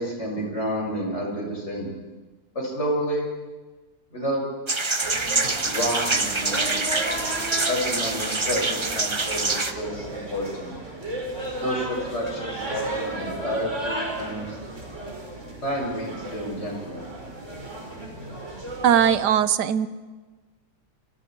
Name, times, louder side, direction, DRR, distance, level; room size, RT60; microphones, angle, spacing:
voice 1, 0.0-1.9 2.5-3.3 4.1-4.4 4.7-4.8 5.6-6.9 7.7-10.7 11.6-14.6 15.6-17.0, equal, 40° left, -2 dB, 6.9 m, -30 dB
sound 1, 4.7-9.7, right 3 dB, 20° right, 0.9 m, -25 dB
sound 2, 5.0-19.3, right 1 dB, 45° right, 5.2 m, -34 dB
voice 2, 18.8-19.9, right 9 dB, 90° right, 14 dB, 1.5 m, -19 dB
28.5 x 26.5 x 4.6 m, 1.3 s
omnidirectional pair, 1.7 m